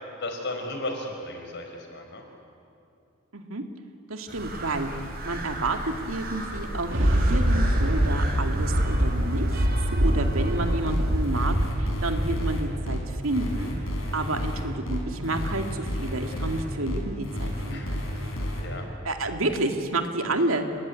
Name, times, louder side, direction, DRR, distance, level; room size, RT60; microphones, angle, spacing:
voice 1, 0.2-2.2 17.7-18.3 18.6-18.9, left 2 dB, 60° left, 3 dB, 5.1 m, -35 dB
voice 2, 3.3-3.6 4.1-4.9 5.2-13.7 14.1-18.0 19.0-20.6, right 2 dB, 85° right, 5 dB, 2.4 m, -30 dB
sound 1, 4.3-11.3, right 1 dB, 45° right, 6.1 m, -37 dB
Thunder, 6.5-14.0 14.5-14.6, equal, 65° right, 2.9 m, -25 dB
sound 2, 10.9-18.6, equal, 85° left, 6.4 m, -31 dB
29.5 x 20.5 x 9.7 m, 2.6 s
head